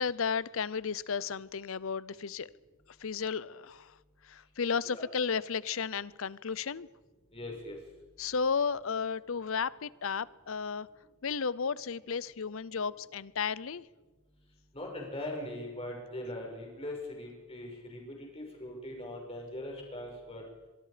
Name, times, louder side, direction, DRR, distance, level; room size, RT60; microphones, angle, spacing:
voice 1, 0.0-2.5 3.0-4.0 4.2-6.9 8.2-10.9 11.2-13.9, left 6 dB, 65° left, 0.6 m, -33 dB
voice 2, 7.3-7.8 14.7-20.4, left 1 dB, 25° left, 5.7 m, -41 dB
24.5 x 23.5 x 5.1 m
head